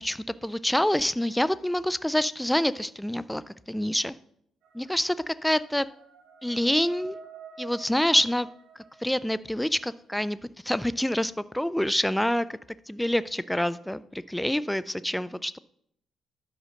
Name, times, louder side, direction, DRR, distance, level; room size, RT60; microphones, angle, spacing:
voice 1, 0.0-4.1 4.7-5.9 6.4-7.2 7.6-8.5 9.0-10.4 10.6-12.5 12.9-15.6, left 1 dB, 5° left, 15 dB, 0.4 m, -26 dB
sound 1, 4.6-9.6, right 4 dB, 85° right, 1.7 m, -48 dB
11.0 x 5.5 x 6.4 m, 0.70 s
cardioid pair, 90°, 0 cm